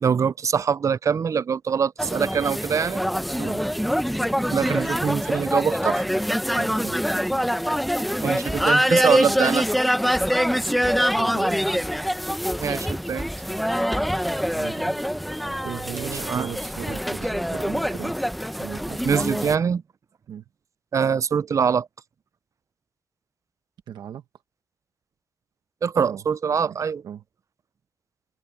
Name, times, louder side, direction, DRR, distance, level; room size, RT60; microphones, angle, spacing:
voice 1, 0.0-3.0 4.5-6.0 8.2-9.7 12.6-13.3 15.9-16.5 19.0-19.8 20.9-21.9 25.8-27.0, right 6 dB, 45° right, 0.4 m, -23 dB
sound 1, 2.0-19.6, equal, ahead, 0.9 m, -25 dB
voice 2, 6.5-7.0 10.8-11.6 14.6-15.0 15.6-18.2 18.6-19.5 20.3-20.4 23.9-24.2 26.1-26.2 26.6-26.8 27.0-27.2, right 9 dB, 90° right, 1.2 m, -37 dB
open air
cardioid pair, 90°, 7 cm